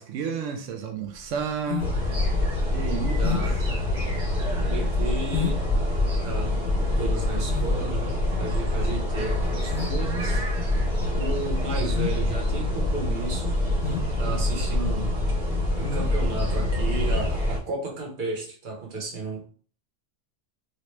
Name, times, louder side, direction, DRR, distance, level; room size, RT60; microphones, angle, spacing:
voice 1, 0.0-1.9 2.7-3.4 14.2-14.4, right 7 dB, 90° right, 0.9 m, -31 dB
sound 1, 1.1-17.4, left 6 dB, 70° left, 0.8 m, -35 dB
sound 2, 1.8-17.6, left 1 dB, 65° right, 1.6 m, -25 dB
voice 2, 3.2-3.9 4.7-5.7 6.2-6.7 7.0-10.4 11.1-13.6 14.2-15.1 15.7-19.4, right 3 dB, 45° right, 1.0 m, -33 dB
3.1 x 2.8 x 3.1 m
omnidirectional pair, 1.2 m